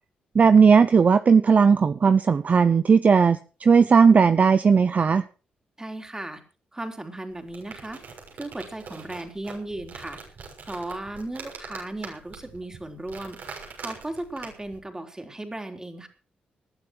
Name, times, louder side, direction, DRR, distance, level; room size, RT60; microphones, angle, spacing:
voice 1, 0.3-5.2, right 5 dB, 50° right, 12 dB, 0.8 m, -17 dB
voice 2, 5.8-6.4 6.7-8.0 8.4-10.2 10.7-16.1, right 1 dB, 15° right, 5 dB, 4.0 m, -36 dB
rock fall, 7.3-14.8, right 5 dB, 70° right, 6.5 m, -43 dB
20.0 x 11.5 x 4.7 m, 0.37 s
supercardioid pair, 60°, 3 cm